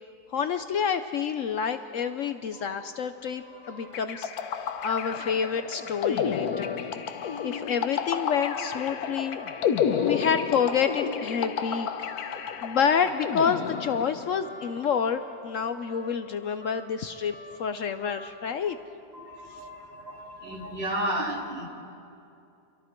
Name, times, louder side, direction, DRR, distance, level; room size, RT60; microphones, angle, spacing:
voice 1, 0.3-4.3 4.8-6.9 7.4-9.4 10.0-11.9 12.6-18.8, left 7 dB, 65° left, 9 dB, 1.0 m, -28 dB
voice 2, 2.5-2.9 3.5-4.0 9.1-9.2 9.8-10.4 11.6-11.7 14.9-15.0 17.5-18.0 18.6-18.8 19.1-21.7, right 1 dB, 40° right, 0 dB, 2.6 m, -36 dB
sound 1, 3.2-18.5, left 2 dB, 5° left, 2.0 m, -49 dB
sound 2, 3.9-14.4, left 7 dB, 80° left, 1.4 m, -31 dB
29.0 x 23.5 x 4.5 m, 2.7 s
omnidirectional pair, 1.6 m